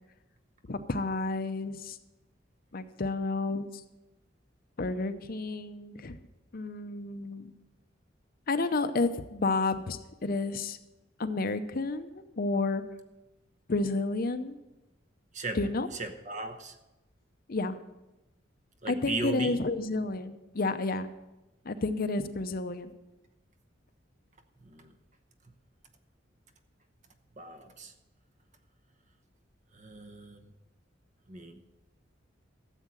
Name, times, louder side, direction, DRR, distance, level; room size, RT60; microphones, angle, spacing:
voice 1, 0.7-2.0 2.7-3.8 4.8-6.2 6.5-7.5 8.5-10.8 11.2-12.8 13.7-14.6 15.5-15.9 17.5-17.7 18.9-21.1 21.6-22.9, left 3 dB, 50° left, 10 dB, 0.7 m, -31 dB
voice 2, 15.9-16.7 18.8-19.6 24.6-24.9 27.4-27.9 29.7-30.4 31.3-31.6, right 2 dB, 40° right, 7 dB, 1.0 m, -37 dB
13.5 x 7.4 x 6.3 m, 1.0 s
head